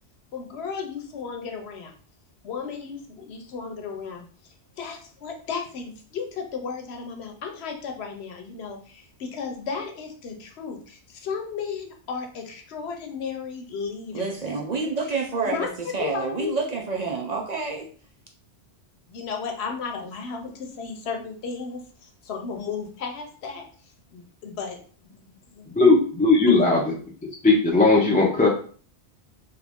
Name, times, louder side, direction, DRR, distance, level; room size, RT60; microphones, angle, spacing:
voice 1, 0.3-1.9 2.4-14.4 15.5-15.7 16.0-16.6 19.1-23.7 24.1-24.8 25.0-25.7 26.6-26.8, left 5 dB, 70° left, 3 dB, 0.9 m, -34 dB
voice 2, 14.1-17.9, right 4 dB, 50° right, 1 dB, 0.5 m, -28 dB
voice 3, 25.7-27.0 27.4-28.5, left 3 dB, 10° left, -3 dB, 0.5 m, -18 dB
3.0 x 2.5 x 3.5 m, 0.43 s
omnidirectional pair, 1.2 m